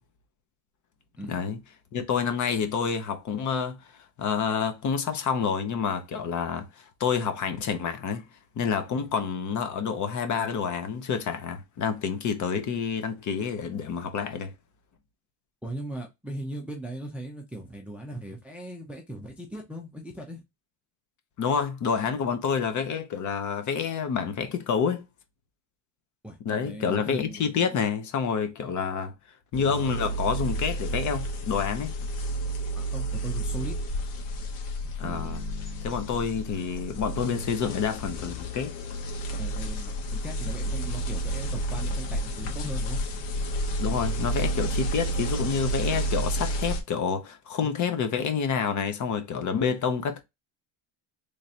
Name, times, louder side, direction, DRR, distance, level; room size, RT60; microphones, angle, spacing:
voice 1, 1.9-3.8 4.2-8.3 8.6-14.5 21.4-25.0 26.5-29.1 29.5-31.9 35.0-35.4 35.8-38.7 43.8-50.2, left 6 dB, 35° left, 0.8 m, -28 dB
voice 2, 15.6-20.4 26.2-27.4 32.7-33.7 39.4-43.0, right 1 dB, 5° right, 0.5 m, -38 dB
sound 1, 29.5-46.8, right 1 dB, 85° left, 1.4 m, -31 dB
Bass guitar, 35.0-38.1, right 5 dB, 60° right, 0.7 m, -45 dB
3.7 x 3.3 x 2.7 m
cardioid pair, 155°, 49 cm